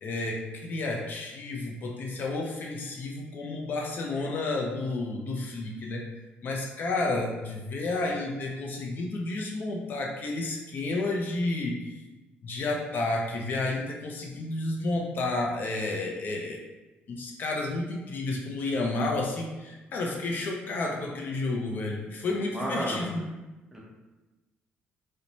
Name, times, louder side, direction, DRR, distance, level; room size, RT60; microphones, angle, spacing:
voice 1, 0.0-6.0 6.4-12.0 12.4-16.6 17.1-23.2, left 2 dB, 55° left, 0 dB, 0.4 m, -31 dB
voice 2, 22.4-23.1 23.7-23.8, equal, 10° right, -4 dB, 0.7 m, -32 dB
2.6 x 2.1 x 2.9 m, 1.1 s
cardioid pair, 110°, 4 cm